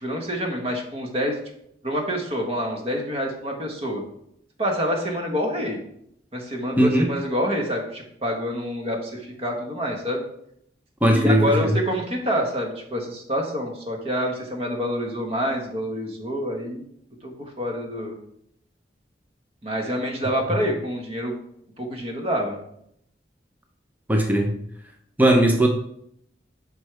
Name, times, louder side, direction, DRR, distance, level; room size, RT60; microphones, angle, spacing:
voice 1, 0.0-1.4 1.8-4.0 4.6-5.8 6.3-10.2 11.1-16.8 17.2-18.1 19.6-21.3 21.8-22.6, equal, 35° right, 2 dB, 1.3 m, -27 dB
voice 2, 6.8-7.1 11.0-11.7 24.1-24.5 25.2-25.7, right 1 dB, 10° right, 3 dB, 0.6 m, -18 dB
8.1 x 5.4 x 3.3 m, 0.72 s
head